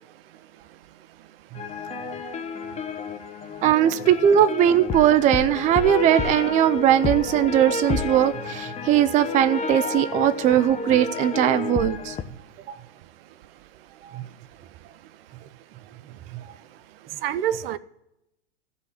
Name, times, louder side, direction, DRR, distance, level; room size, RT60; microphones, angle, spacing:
sound 1, 1.6-12.2, left 5 dB, 20° left, 0.9 m, -31 dB
voice 1, 1.9-2.3 17.2-17.8, right 10 dB, 60° right, 0.7 m, -28 dB
voice 2, 3.6-12.1 14.1-14.2, right 10 dB, 25° right, 0.5 m, -20 dB
14.5 x 5.4 x 9.5 m
hypercardioid pair, 110°, 33 cm